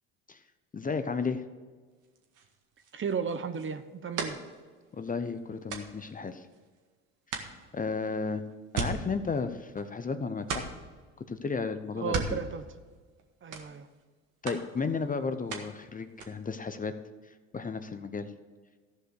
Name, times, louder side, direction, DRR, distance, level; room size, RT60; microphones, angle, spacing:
voice 1, 0.7-1.4 4.9-6.5 7.7-8.4 8.7-10.7 11.3-12.4 14.4-16.9 17.5-18.3, left 4 dB, 25° left, 10 dB, 0.7 m, -33 dB
sound 1, 2.0-6.9 7.3-10.1 10.4-11.0 11.9-13.2 13.5-14.1 14.5-15.8 16.1-16.6, right 5 dB, 55° right, 1.8 m, -39 dB
voice 2, 2.9-4.4 12.0-12.7 13.4-13.9, right 6 dB, 35° right, 10 dB, 0.9 m, -34 dB
14.5 x 5.1 x 6.6 m, 1.4 s
hypercardioid pair, 70°, 36 cm